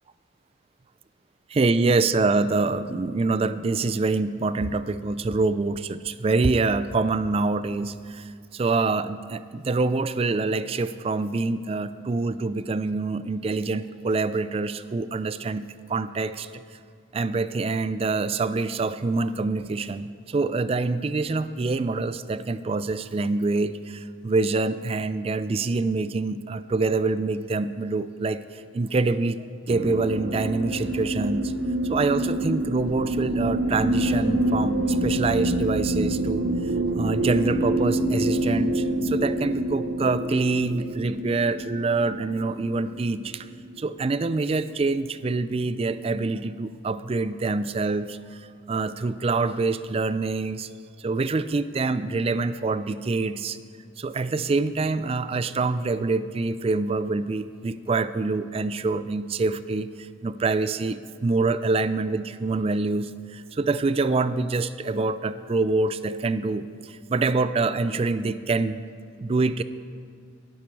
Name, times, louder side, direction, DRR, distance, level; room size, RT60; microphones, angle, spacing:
voice 1, 1.5-16.5 17.1-28.4 28.7-31.5 31.9-36.4 37.0-43.5 43.8-48.2 48.7-50.7 51.0-53.6 54.0-59.9 60.2-68.9 69.2-69.6, right 3 dB, 30° right, 14 dB, 0.3 m, -25 dB
sound 1, 29.7-44.2, right 1 dB, 65° right, 0.7 m, -27 dB
12.0 x 12.0 x 4.7 m, 2.1 s
head